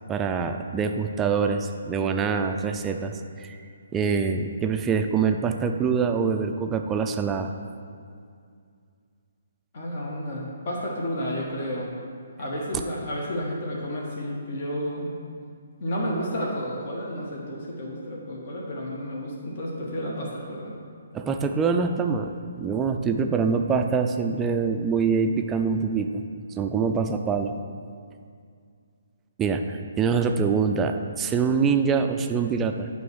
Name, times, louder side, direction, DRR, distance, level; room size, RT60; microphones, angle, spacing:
voice 1, 0.1-3.6 3.9-7.5 21.1-26.2 26.6-27.5 29.4-32.9, right 5 dB, 15° right, 5 dB, 0.4 m, -25 dB
voice 2, 9.7-11.9 12.4-15.1 15.8-20.7, equal, 50° left, -3 dB, 1.4 m, -31 dB
9.1 x 3.2 x 6.2 m, 2.3 s
figure-of-eight pair, 135°, 0 cm